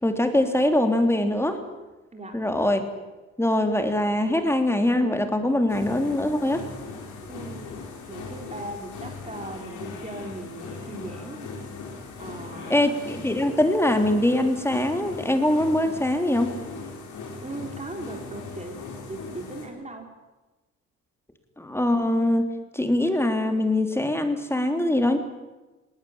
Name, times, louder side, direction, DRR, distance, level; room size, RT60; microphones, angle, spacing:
voice 1, 0.0-1.6 2.3-2.8 3.4-6.6 12.7-16.5 21.6-25.2, left 1 dB, 10° left, 6 dB, 3.2 m, -23 dB
sound 1, 5.7-19.7, left 4 dB, 80° left, 5.1 m, -39 dB
voice 2, 7.3-7.7 8.1-11.5 12.2-12.9 17.4-18.8 19.1-20.1, right 2 dB, 20° right, 3 dB, 3.6 m, -38 dB
19.5 x 19.0 x 9.1 m, 1.1 s
cardioid pair, 90°, 30 cm